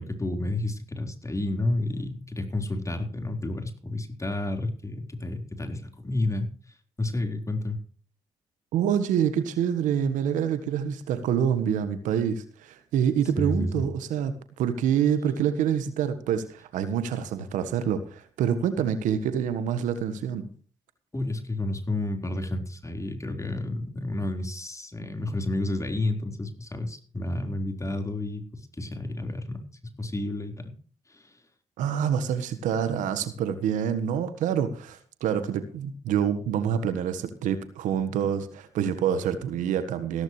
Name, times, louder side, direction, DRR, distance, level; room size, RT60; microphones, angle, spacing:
voice 1, 0.0-6.5 7.0-7.8 13.4-13.8 21.1-29.6 30.0-30.7 31.1-31.3, left 2 dB, 25° left, 5 dB, 4.3 m, -30 dB
voice 2, 8.7-20.5 31.8-40.2, right 8 dB, 80° right, 11 dB, 1.5 m, -26 dB
16.0 x 14.0 x 3.2 m, 0.42 s
hypercardioid pair, 45°, 13 cm